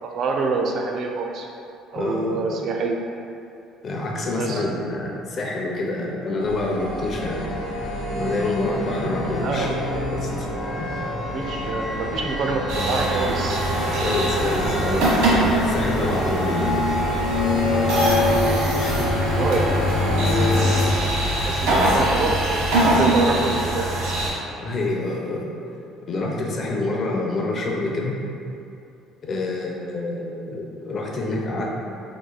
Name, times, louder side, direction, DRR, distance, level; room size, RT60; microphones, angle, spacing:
voice 1, 0.0-1.5 1.9-3.1 4.4-4.6 9.4-9.7 11.3-13.6 19.4-20.9 21.4-24.1, right 3 dB, 55° right, 2 dB, 0.4 m, -26 dB
voice 2, 1.9-2.6 3.8-7.4 8.2-9.7 10.1-10.5 10.8-10.9 14.0-16.7 18.8-19.0 20.4-20.5 24.6-25.5 26.0-28.1 29.2-31.7, left 2 dB, 45° left, -1 dB, 0.6 m, -27 dB
sound 1, 6.4-20.9, left 2 dB, 75° left, 0.7 m, -25 dB
sound 2, 12.7-24.3, right 1 dB, 85° right, 1.1 m, -23 dB
3.0 x 2.3 x 3.8 m, 2.7 s
cardioid pair, 105°, 0 cm